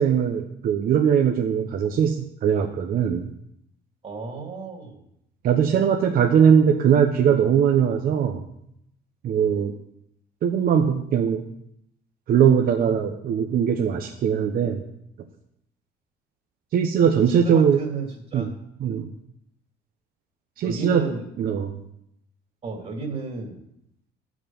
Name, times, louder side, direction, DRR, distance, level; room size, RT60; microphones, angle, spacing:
voice 1, 0.0-3.3 5.4-8.4 9.2-9.7 10.4-11.4 12.3-14.8 16.7-17.8 18.3-18.5 18.8-19.1 20.6-21.0 21.4-21.8, right 8 dB, 60° right, 3 dB, 1.0 m, -20 dB
voice 2, 4.0-5.0 17.0-18.5 18.8-19.0 20.6-21.3 22.6-23.6, right 4 dB, 40° right, 1 dB, 2.6 m, -33 dB
12.0 x 6.3 x 7.1 m, 0.77 s
cardioid pair, 110°, 17 cm